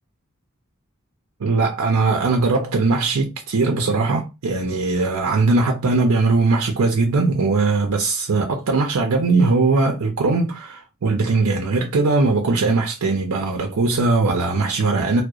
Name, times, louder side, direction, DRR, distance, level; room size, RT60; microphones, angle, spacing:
voice 1, 1.4-15.2, right 3 dB, 90° right, 0.5 m, -20 dB
2.7 x 2.0 x 2.3 m
head